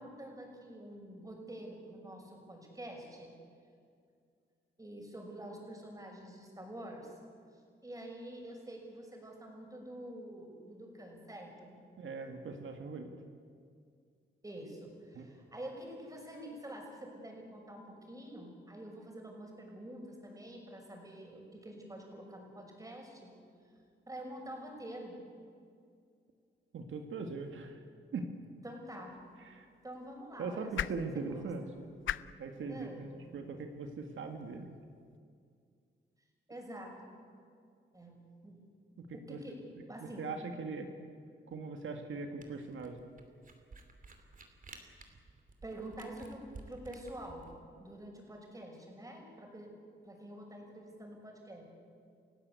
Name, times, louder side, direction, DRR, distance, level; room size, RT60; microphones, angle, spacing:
voice 1, 0.0-3.3 4.8-7.1 7.5-11.8 14.4-23.3 24.1-25.2 28.6-29.2 29.8-31.8 32.7-33.1 36.5-37.2 37.9-38.6 39.1-40.3 45.6-47.5 47.8-49.7 50.0-51.6, right 1 dB, 15° right, 1 dB, 6.2 m, -47 dB
voice 2, 12.0-13.1 15.1-15.3 26.7-27.8 28.1-28.3 29.4-29.7 30.4-31.8 32.4-33.1 33.3-34.7 39.0-39.4 40.0-40.9 41.5-43.0, right 4 dB, 80° right, 4 dB, 2.0 m, -40 dB
sound 1, 28.9-35.2, left 10 dB, 80° left, 0.6 m, -45 dB
Camera, 42.4-47.6, right 3 dB, 45° right, 3.0 m, -53 dB
30.0 x 16.0 x 8.3 m, 2.3 s
wide cardioid pair, 110°, 20 cm